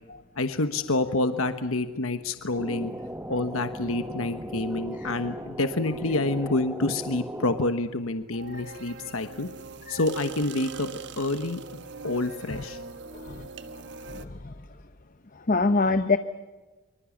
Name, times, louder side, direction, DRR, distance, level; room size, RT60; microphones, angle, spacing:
voice 1, 0.4-2.9 3.3-9.5 9.9-10.9 11.2-12.8, left 2 dB, 70° left, 9 dB, 1.2 m, -28 dB
sound 1, 2.6-7.7, right 1 dB, 10° right, 0.9 m, -37 dB
sound 2, 8.3-14.3, right 4 dB, 50° right, 1.3 m, -41 dB
voice 2, 14.1-14.5 15.5-16.2, left 3 dB, 40° left, 10 dB, 0.8 m, -24 dB
25.5 x 24.5 x 7.3 m, 1.3 s
head